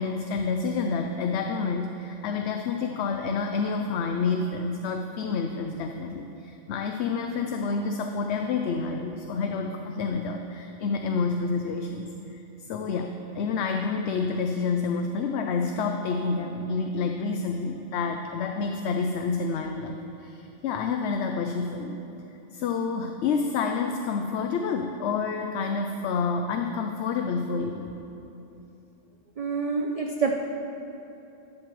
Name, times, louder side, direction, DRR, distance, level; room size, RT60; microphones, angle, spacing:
voice 1, 0.0-22.0 22.5-27.9, left 4 dB, 70° left, 4 dB, 0.8 m, -29 dB
voice 2, 29.4-30.4, right 4 dB, 50° right, 3 dB, 0.4 m, -27 dB
13.5 x 9.9 x 3.1 m, 2.9 s
omnidirectional pair, 1.2 m